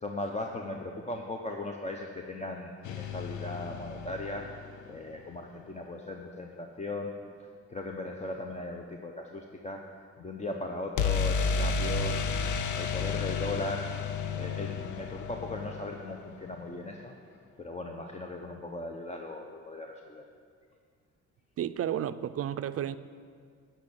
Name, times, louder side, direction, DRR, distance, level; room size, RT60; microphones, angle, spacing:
voice 1, 0.0-4.4 4.9-7.1 7.7-9.8 10.2-12.2 12.8-13.8 14.3-17.1 17.6-20.2, left 2 dB, 20° left, 2 dB, 0.8 m, -38 dB
Trailer Super Hits, 2.8-4.9 11.0-16.7, left 5 dB, 75° left, 0.8 m, -32 dB
voice 2, 21.6-23.0, right 10 dB, 50° right, 14 dB, 0.5 m, -32 dB
10.5 x 5.8 x 8.8 m, 2.1 s
cardioid pair, 90°, 30 cm